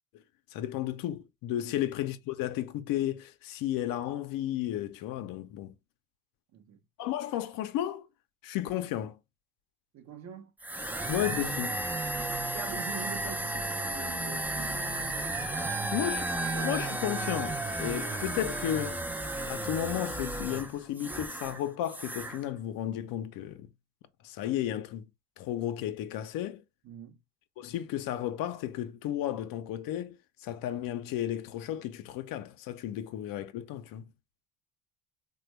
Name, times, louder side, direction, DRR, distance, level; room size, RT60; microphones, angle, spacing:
voice 1, 0.5-5.7 7.0-8.0 8.4-9.2 11.1-11.7 15.9-16.3 16.5-19.0 19.5-23.7 24.2-25.1 25.4-26.6 27.6-30.2 30.4-34.1, left 12 dB, 60° left, 0.6 m, -33 dB
voice 2, 9.9-10.5 11.6-11.9 12.5-14.9 15.6-16.6 26.8-27.2, right 8 dB, 45° right, 0.7 m, -45 dB
sound 1, 10.6-21.6 21.9-22.4, right 2 dB, 5° right, 0.4 m, -33 dB
3.3 x 2.2 x 3.1 m
supercardioid pair, 90°, 38 cm